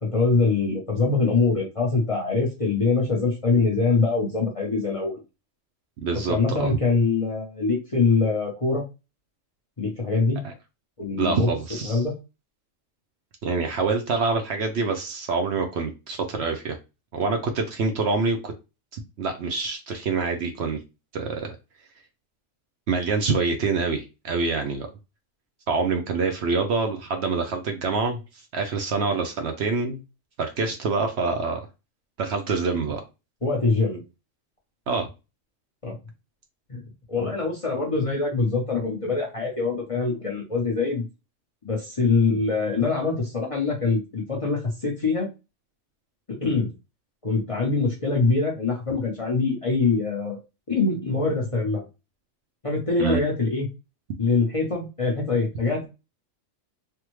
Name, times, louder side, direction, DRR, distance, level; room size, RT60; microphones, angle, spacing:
voice 1, 0.0-5.2 6.3-8.8 9.8-10.4 11.0-11.5 11.8-12.1 33.4-34.0 35.8-36.0 36.7-36.8 37.1-41.0 41.6-45.3 46.4-46.7 47.2-50.4 50.7-51.8 52.6-53.7 54.2-55.9, left 4 dB, 30° left, -2 dB, 0.7 m, -23 dB
voice 2, 6.0-6.7 10.4-10.5 11.2-12.0 13.4-16.8 17.1-18.5 18.9-20.8 21.1-21.5 22.9-24.9 25.7-28.2 28.5-30.0 30.4-31.7 32.2-33.0 34.9-35.1 53.0-53.2, right 4 dB, 65° right, 4 dB, 0.8 m, -26 dB
3.4 x 2.1 x 3.0 m, 0.27 s
omnidirectional pair, 1.3 m